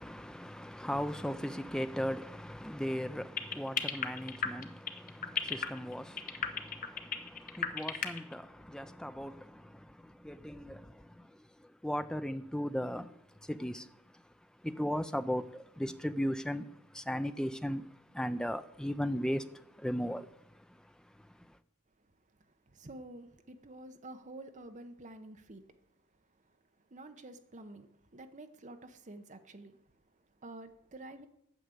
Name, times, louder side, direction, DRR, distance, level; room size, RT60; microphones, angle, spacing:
voice 1, 0.0-11.3 11.6-13.9 14.6-17.9 18.1-20.3, equal, 5° left, 0.4 m, -37 dB
sound 1, 3.4-8.3, left 7 dB, 40° left, 0.9 m, -33 dB
voice 2, 22.7-25.6 26.9-27.9 28.1-29.8 30.4-31.3, right 2 dB, 35° right, 0.9 m, -49 dB
9.2 x 6.6 x 8.3 m
head